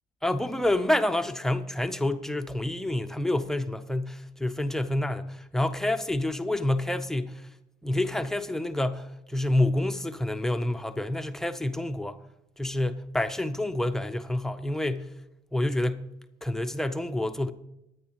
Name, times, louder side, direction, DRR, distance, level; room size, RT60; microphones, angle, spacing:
voice 1, 0.2-7.5 7.8-12.2 12.6-15.1 15.5-16.1 16.4-17.5, left 1 dB, 5° left, 0.5 m, -28 dB
22.0 x 9.4 x 2.9 m
cardioid pair, 155°, 15 cm